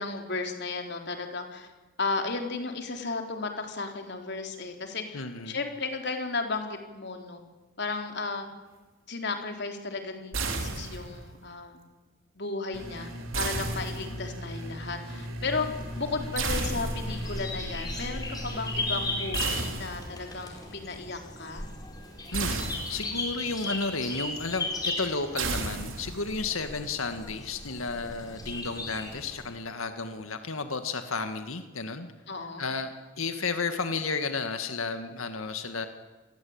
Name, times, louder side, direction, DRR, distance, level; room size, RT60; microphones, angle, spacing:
voice 1, 0.0-1.7 2.0-7.4 7.8-8.5 9.1-11.8 12.4-15.7 16.0-21.7 26.7-26.8 32.3-32.6, left 3 dB, 55° left, 4 dB, 3.7 m, -34 dB
voice 2, 5.1-5.6 22.3-32.1 32.6-35.9, left 4 dB, 80° left, 8 dB, 1.9 m, -32 dB
sound 1, 10.3-11.3 13.3-14.4 16.3-17.3 19.3-20.3 22.3-23.3 25.4-26.4, right 4 dB, 70° right, 3.6 m, -33 dB
sound 2, 12.7-19.6, equal, 85° right, 4.2 m, -38 dB
sound 3, 15.6-29.5, left 2 dB, 20° left, 4.6 m, -37 dB
27.5 x 21.0 x 8.8 m, 1.2 s
head